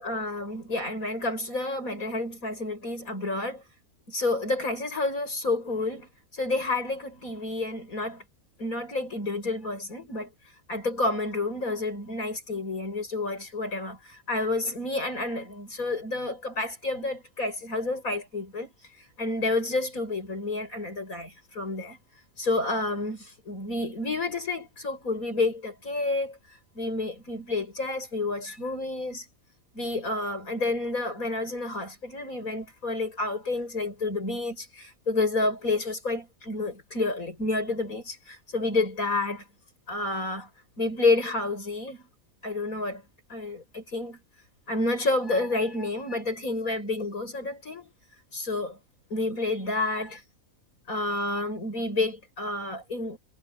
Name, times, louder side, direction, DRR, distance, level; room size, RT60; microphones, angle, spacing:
voice 1, 0.0-3.6 4.1-8.2 8.6-10.3 10.7-18.7 19.2-22.0 22.4-26.4 26.7-29.2 29.7-39.4 39.9-40.5 40.8-42.1 42.4-43.0 43.3-44.2 44.7-47.9 48.3-48.8 49.1-50.2 50.9-53.2, left 2 dB, 70° left, 8.0 m, -29 dB
omnidirectional pair, 1.5 m